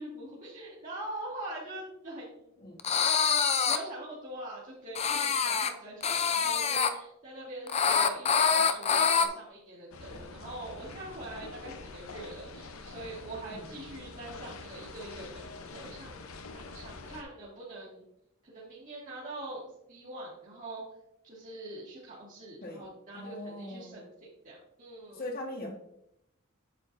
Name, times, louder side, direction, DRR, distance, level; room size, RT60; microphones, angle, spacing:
voice 1, 0.0-2.5 3.6-16.2 16.5-18.1 18.4-19.6 19.9-20.8 21.2-25.2, right 1 dB, 40° right, -8 dB, 2.1 m, -43 dB
sound 1, 2.8-3.8 4.9-5.7 6.0-6.9 7.7-9.3, left 6 dB, 30° left, 0.5 m, -25 dB
sound 2, 9.9-17.2, left 3 dB, 85° left, 0.8 m, -46 dB
voice 2, 23.1-24.0 25.1-25.7, left 1 dB, 45° left, 1 dB, 1.6 m, -40 dB
8.4 x 7.5 x 2.6 m, 0.78 s
head